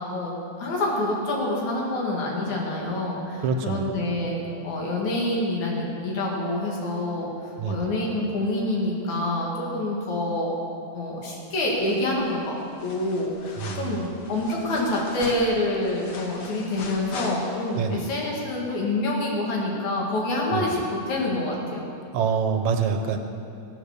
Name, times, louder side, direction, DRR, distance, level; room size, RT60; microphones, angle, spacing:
voice 1, 0.6-4.4 4.6-7.3 7.7-10.6 10.9-12.5 12.8-21.9, left 1 dB, 75° left, -2 dB, 3.5 m, -27 dB
voice 2, 3.4-3.9 7.6-7.9 13.6-14.2 17.8-18.1 20.5-20.7 22.1-23.2, right 6 dB, 75° right, 5 dB, 2.2 m, -26 dB
sound 1, 11.8-12.3 12.6-17.9 18.2-18.3, left 3 dB, 60° left, 1.1 m, -40 dB
14.0 x 9.0 x 6.7 m, 2.5 s
omnidirectional pair, 3.3 m